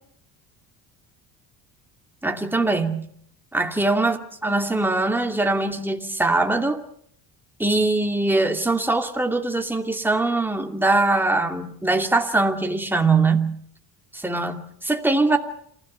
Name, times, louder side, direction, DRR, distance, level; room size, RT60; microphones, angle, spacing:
voice 1, 2.2-3.1 3.5-6.8 7.6-13.6 14.1-15.4, right 2 dB, 5° right, 4 dB, 2.6 m, -22 dB
27.5 x 16.5 x 8.1 m, 0.65 s
cardioid pair, 100°, 40 cm